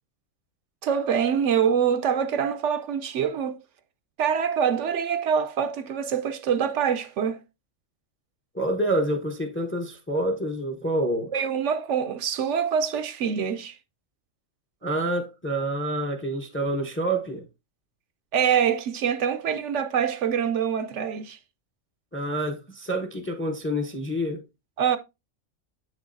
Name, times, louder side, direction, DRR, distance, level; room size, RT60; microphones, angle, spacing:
voice 1, 0.8-3.6 4.2-7.4 11.3-13.8 18.3-21.4 24.8-25.0, right 7 dB, 70° right, 0.8 m, -25 dB
voice 2, 8.5-11.3 14.8-17.5 22.1-24.4, right 1 dB, 15° left, 0.6 m, -27 dB
7.7 x 6.3 x 2.5 m
omnidirectional pair, 1.4 m